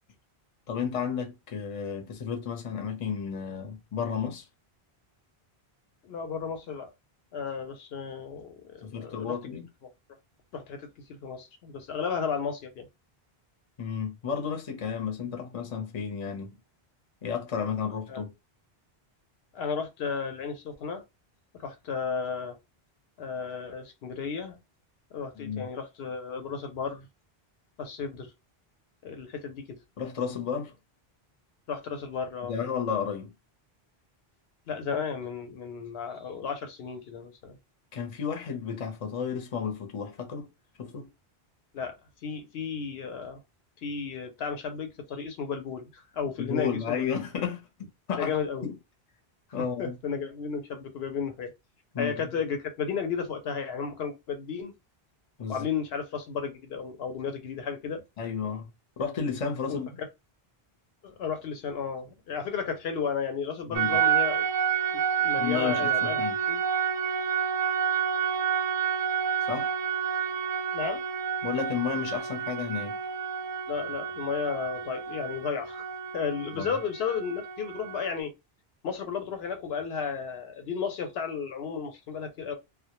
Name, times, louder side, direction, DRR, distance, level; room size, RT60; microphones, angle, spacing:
voice 1, 0.7-4.4 8.8-9.7 13.8-16.5 17.2-18.3 25.4-25.7 30.0-30.7 32.5-33.3 37.9-40.5 40.8-41.1 46.4-47.6 48.1-48.4 48.6-48.8 49.5-50.0 51.9-52.3 55.4-55.7 58.2-58.7 59.0-59.9 63.7-64.0 65.4-66.3 69.5-69.7 71.4-73.0 76.6-76.7, left 7 dB, 40° left, 0.6 m, -32 dB
voice 2, 6.0-6.9 7.3-9.4 10.5-12.9 18.1-18.2 19.5-21.0 21.6-22.6 23.2-24.6 25.1-27.1 27.8-28.3 29.0-29.8 31.7-32.5 34.7-37.6 41.7-41.9 42.2-43.4 43.8-47.1 48.2-48.6 49.8-51.5 52.0-54.7 55.5-58.0 59.7-60.1 61.0-64.5 64.9-66.6 70.7-71.0 73.7-75.9 76.1-78.3 78.8-82.5, left 6 dB, 80° left, 0.8 m, -33 dB
sound 1, 63.7-78.2, right 8 dB, 55° right, 0.4 m, -29 dB
2.1 x 2.1 x 2.9 m
omnidirectional pair, 1.0 m